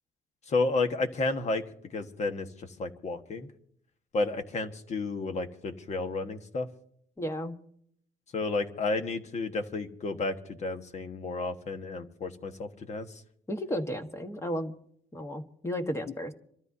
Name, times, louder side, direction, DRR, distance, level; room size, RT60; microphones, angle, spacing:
voice 1, 0.5-1.6 1.9-3.5 4.1-6.7 8.3-13.2, left 3 dB, 40° left, 6 dB, 1.4 m, -31 dB
voice 2, 7.2-7.6 13.5-14.7 15.1-16.3, equal, 15° left, 6 dB, 1.4 m, -33 dB
26.5 x 13.0 x 2.8 m, 0.67 s
cardioid pair, 110°, 17 cm